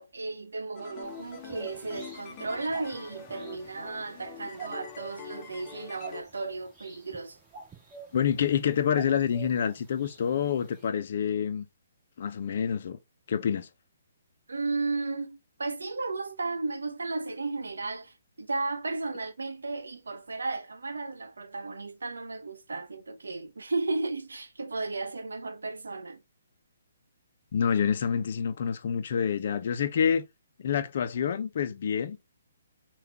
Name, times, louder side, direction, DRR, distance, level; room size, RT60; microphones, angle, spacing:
voice 1, 0.0-7.4 14.5-26.2, right 3 dB, 85° right, 0.8 m, -34 dB
sound 1, 0.8-6.2, left 7 dB, 25° left, 1.1 m, -45 dB
sound 2, 1.0-10.9, right 6 dB, 15° right, 2.4 m, -48 dB
voice 2, 8.1-11.7 12.2-13.0 13.3-13.7 27.5-30.2 30.6-32.2, left 7 dB, 55° left, 0.8 m, -27 dB
5.8 x 2.6 x 3.5 m
hypercardioid pair, 145°, 0 cm